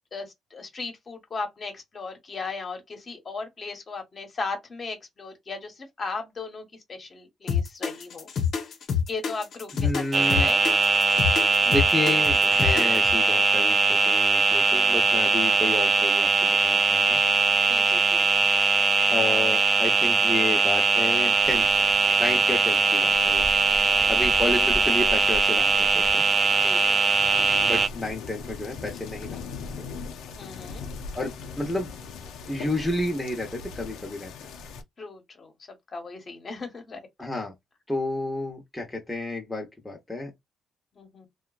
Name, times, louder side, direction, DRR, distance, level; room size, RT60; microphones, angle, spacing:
voice 1, 0.1-8.3 9.1-10.6 17.7-18.5 23.7-24.1 26.6-27.0 30.4-30.9 35.0-35.5 35.9-37.0 40.9-41.3, left 4 dB, 40° left, 1.1 m, -37 dB
sound 1, 7.5-13.1, left 7 dB, 60° left, 0.9 m, -27 dB
voice 2, 9.7-10.5 11.6-17.2 19.1-21.9 22.2-23.5 24.1-26.2 27.6-29.4 29.8-29.9 31.1-31.9 32.5-34.3 37.2-37.5 37.9-40.3, left 2 dB, 10° left, 0.9 m, -31 dB
sound 2, 10.1-27.9, right 4 dB, 40° right, 0.3 m, -21 dB
sound 3, 21.4-34.8, left 4 dB, 90° left, 0.6 m, -39 dB
2.9 x 2.3 x 2.4 m
cardioid pair, 90°, 0 cm